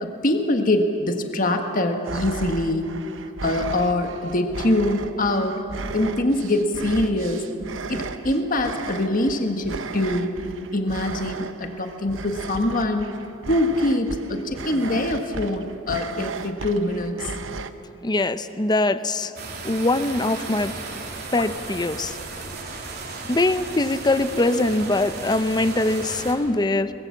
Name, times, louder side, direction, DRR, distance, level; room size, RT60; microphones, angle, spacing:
voice 1, 0.0-2.9 3.4-5.6 5.9-7.4 7.9-10.3 10.7-13.1 13.5-17.3 21.4-21.5 22.5-22.6 23.0-23.1 24.3-24.4, left 1 dB, 45° left, 5 dB, 1.5 m, -24 dB
sound 1, 2.0-17.7, right 3 dB, 70° right, 0.9 m, -35 dB
voice 2, 18.0-19.3 19.6-20.7 21.3-22.2 23.3-26.9, left 2 dB, 20° left, 12 dB, 0.7 m, -22 dB
sound 2, 19.4-26.3, right 3 dB, 50° right, 3.2 m, -35 dB
23.0 x 21.0 x 7.2 m, 2.8 s
head